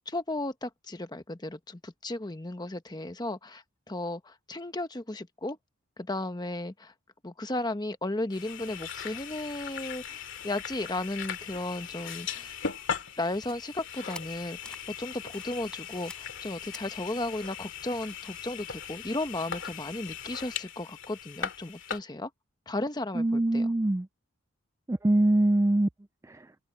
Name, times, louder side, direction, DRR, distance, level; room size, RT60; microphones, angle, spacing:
voice 1, 0.1-5.6 6.0-6.9 7.2-12.6 13.2-22.3 22.7-23.7, left 2 dB, 20° left, 1.0 m, -35 dB
sound 1, 8.3-22.0, left 7 dB, 60° left, 2.4 m, -39 dB
sound 2, 13.3-20.5, left 1 dB, 5° left, 8.0 m, -53 dB
voice 2, 23.2-24.1 24.9-25.9 26.3-26.5, right 1 dB, 15° right, 0.3 m, -24 dB
head